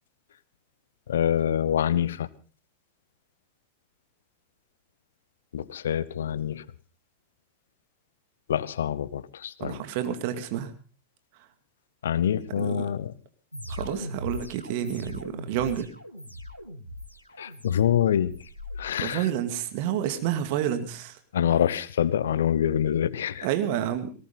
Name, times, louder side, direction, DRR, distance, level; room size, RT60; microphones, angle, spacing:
voice 1, 1.1-2.3 5.5-6.6 8.5-9.8 12.0-13.1 17.4-18.3 18.8-19.2 21.3-23.5, left 9 dB, 65° left, 19 dB, 0.9 m, -25 dB
voice 2, 9.6-10.7 12.6-12.9 13.7-15.9 19.0-21.2 23.4-24.1, right 10 dB, 50° right, 9 dB, 2.1 m, -29 dB
sound 1, 13.5-18.8, left 1 dB, 90° left, 2.0 m, -39 dB
18.5 x 18.5 x 3.9 m, 0.36 s
figure-of-eight pair, 90°, 0 cm